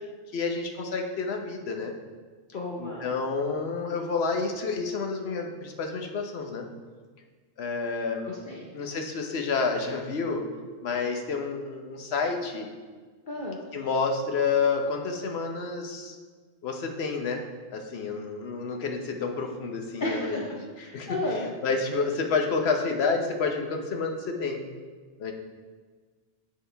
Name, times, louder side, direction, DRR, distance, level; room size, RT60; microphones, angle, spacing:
voice 1, 0.3-1.9 2.8-6.6 7.6-8.3 8.7-10.4 10.8-12.7 13.7-16.2 16.6-17.4 17.7-20.7 20.9-21.2 21.6-24.6 25.2-25.3, left 4 dB, 75° left, 3 dB, 1.1 m, -29 dB
voice 2, 2.5-3.1 8.2-8.7 13.3-13.6 20.0-20.4 20.8-21.5, left 2 dB, 55° left, -2 dB, 0.9 m, -32 dB
7.4 x 6.5 x 3.3 m, 1.5 s
omnidirectional pair, 1.1 m